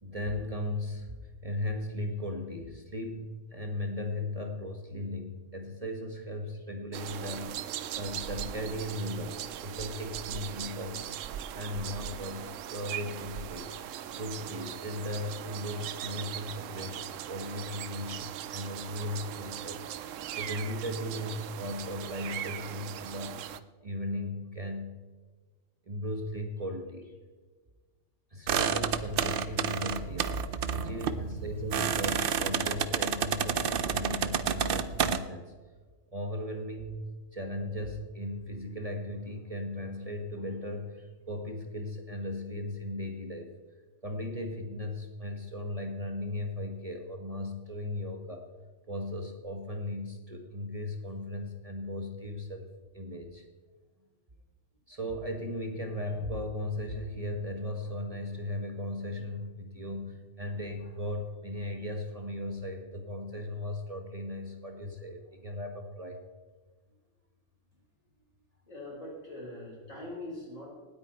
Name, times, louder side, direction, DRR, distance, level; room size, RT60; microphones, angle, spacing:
voice 1, 0.0-7.6 7.9-11.0 11.5-23.4 23.8-24.9 25.9-27.1 28.3-35.5 36.1-43.5 44.0-48.5 48.9-53.5 54.9-66.2, left 1 dB, 30° right, 4 dB, 1.1 m, -37 dB
sound 1, 6.9-23.6, right 10 dB, 75° right, 1.0 m, -39 dB
sound 2, 28.5-35.2, right 7 dB, 55° right, 0.7 m, -30 dB
voice 2, 68.7-70.7, left 1 dB, 75° left, -4 dB, 5.4 m, -42 dB
18.5 x 8.7 x 4.4 m, 1.4 s
omnidirectional pair, 1.3 m